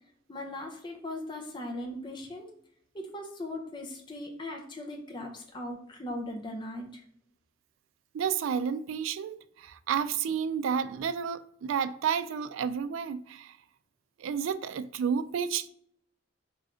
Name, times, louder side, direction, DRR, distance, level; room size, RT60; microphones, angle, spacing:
voice 1, 0.3-2.5 2.9-7.0, left 1 dB, 25° left, 0.6 m, -39 dB
voice 2, 8.1-13.6 14.2-15.7, right 7 dB, 85° right, 0.3 m, -31 dB
3.6 x 3.3 x 3.6 m
head